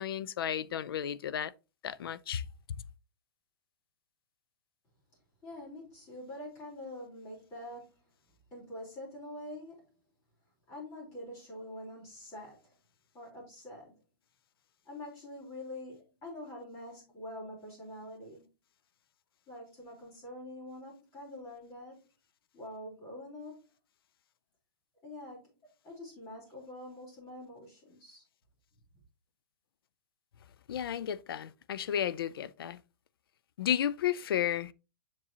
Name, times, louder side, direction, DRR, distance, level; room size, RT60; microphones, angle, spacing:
voice 1, 0.0-1.5 1.8-2.4 30.7-32.8 33.6-34.7, left 10 dB, 80° left, 0.5 m, -33 dB
voice 2, 5.4-8.1 8.5-9.9 10.7-12.7 13.1-14.0 14.8-18.5 19.5-22.0 22.5-23.6 25.0-28.2, left 1 dB, 25° left, 4.0 m, -45 dB
7.4 x 6.2 x 2.8 m
hypercardioid pair, 170°, 12 cm